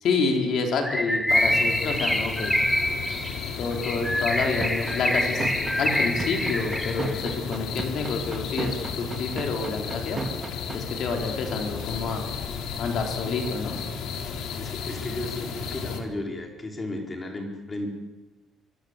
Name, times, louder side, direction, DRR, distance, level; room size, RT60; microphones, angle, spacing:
voice 1, 0.0-2.6 3.6-5.5 5.8-10.2 10.7-12.3 12.8-13.8, left 4 dB, 55° left, 3 dB, 4.5 m, -28 dB
Bird, 0.8-7.2, equal, 5° left, 1.0 m, -26 dB
sound 1, 1.3-16.0, left 6 dB, 75° left, 3.8 m, -34 dB
sound 2, 4.6-10.8, right 4 dB, 20° right, 2.4 m, -32 dB
voice 2, 14.6-17.9, left 2 dB, 20° left, 2 dB, 4.8 m, -34 dB
26.0 x 23.5 x 8.4 m, 1.1 s
cardioid pair, 170°, 0 cm